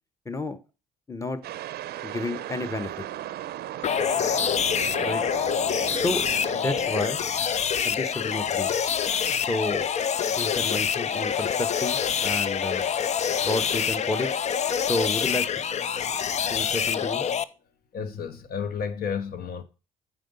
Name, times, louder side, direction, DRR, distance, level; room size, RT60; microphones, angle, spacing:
voice 1, 0.2-0.6 1.1-1.4 2.0-3.0 5.0-5.2 6.0-6.2 6.5-7.2 7.8-8.7 9.5-9.9 10.4-12.9 13.5-14.3 14.9-15.5 16.5-17.3, left 2 dB, 15° left, 1.1 m, -30 dB
sound 1, 1.4-7.7, right 13 dB, 55° right, 0.6 m, -36 dB
sound 2, 3.8-17.4, left 8 dB, 35° left, 0.5 m, -26 dB
voice 2, 17.9-19.6, left 6 dB, 50° left, 1.1 m, -32 dB
9.1 x 4.1 x 5.3 m
hypercardioid pair, 55°, 19 cm